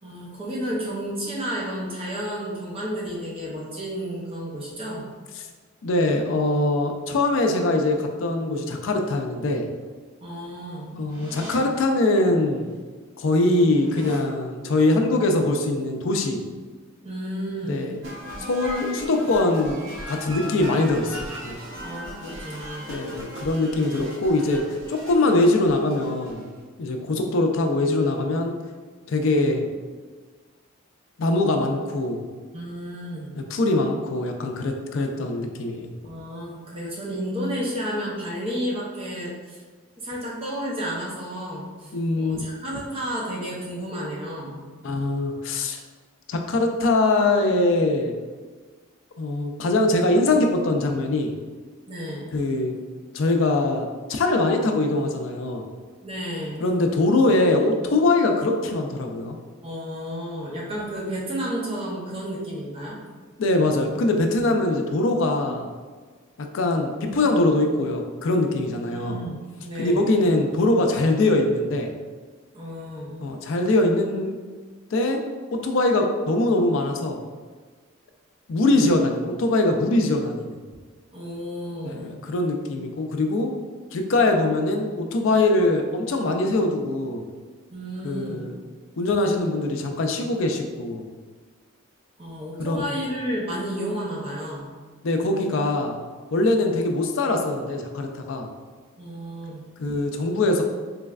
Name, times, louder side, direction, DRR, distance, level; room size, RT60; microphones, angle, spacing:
voice 1, 0.0-5.1 10.2-10.9 17.0-17.9 21.8-23.0 32.5-33.4 36.0-39.6 40.0-44.6 51.9-52.3 56.0-56.6 59.6-63.0 68.9-70.1 72.5-73.1 81.1-82.1 87.7-88.5 92.2-94.7 99.0-99.6, equal, 25° right, -5 dB, 0.6 m, -32 dB
voice 2, 5.8-9.7 10.9-12.7 13.2-16.4 17.7-18.0 18.4-21.6 22.9-24.6 24.9-26.5 26.8-28.6 29.1-29.7 31.2-32.3 33.3-35.9 41.9-42.4 44.8-45.8 46.3-48.2 49.2-51.3 52.3-52.8 53.1-55.7 56.6-59.4 63.4-65.7 66.4-69.2 69.8-71.9 73.2-74.4 74.9-75.2 75.5-77.2 78.5-80.6 81.8-83.5 83.9-87.2 88.0-88.6 89.0-91.1 92.6-92.8 95.0-96.0 96.3-98.5 99.8-100.6, left 2 dB, 65° left, 4 dB, 0.4 m, -22 dB
Reverse Reverb Impact, 11.1-11.6 12.7-12.8 13.1-14.2 17.4-17.7 18.1-18.4 18.8-19.4, equal, 45° right, 1.5 m, -43 dB
sound 1, 18.0-26.6, equal, 65° right, 0.9 m, -38 dB
3.2 x 3.1 x 2.3 m, 1.4 s
head